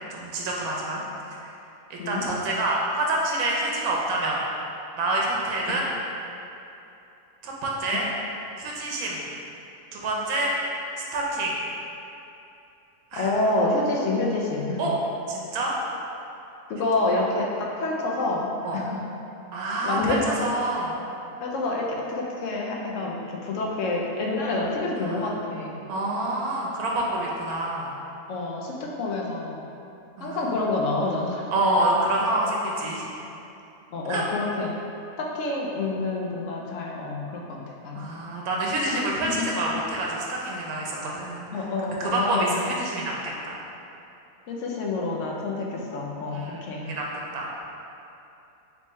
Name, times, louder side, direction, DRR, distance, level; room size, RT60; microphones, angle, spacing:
voice 1, 0.1-1.0 1.4-1.5 1.9-4.4 5.0-5.9 7.4-8.1 8.6-9.2 9.9-10.6 11.1-11.6 13.1-13.3 14.8-14.9 15.3-15.7 18.6-18.8 19.5-20.9 24.6-25.3 25.9-27.9 30.2-30.5 31.5-33.1 34.1-34.2 37.9-41.7 42.0-43.6 46.3-47.1 47.3-47.5, right 1 dB, 80° right, -3 dB, 1.2 m, -27 dB
voice 2, 13.1-14.8 16.7-19.0 19.8-20.2 21.4-25.8 28.3-29.6 30.2-31.5 33.9-34.7 35.2-37.6 37.8-38.0 39.2-39.5 41.5-42.6 44.5-46.9, left 2 dB, 65° left, -2 dB, 0.8 m, -28 dB
3.4 x 3.2 x 4.0 m, 2.8 s
omnidirectional pair, 1.5 m